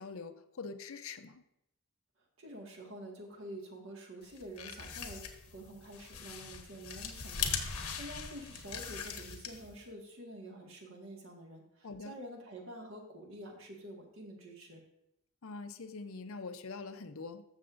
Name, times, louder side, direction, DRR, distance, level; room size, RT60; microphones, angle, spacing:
voice 1, 0.0-1.4 11.8-12.1 15.4-17.4, left 4 dB, 65° left, 9 dB, 0.6 m, -44 dB
voice 2, 2.4-14.8, right 1 dB, 60° right, 1 dB, 1.8 m, -48 dB
sound 1, 4.3-9.8, left 6 dB, 90° left, 1.1 m, -40 dB
14.5 x 6.6 x 2.6 m, 0.83 s
head